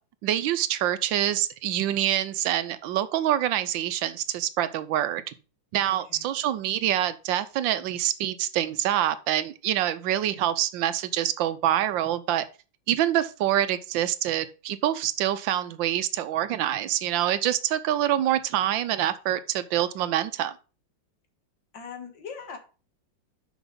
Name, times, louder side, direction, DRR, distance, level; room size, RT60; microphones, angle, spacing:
voice 1, 0.2-5.2 5.7-12.4 12.9-20.5, right 12 dB, 90° right, 1.4 m, -26 dB
voice 2, 5.8-6.2 21.7-22.6, left 6 dB, 75° left, 2.2 m, -40 dB
6.2 x 6.0 x 5.2 m
omnidirectional pair, 2.0 m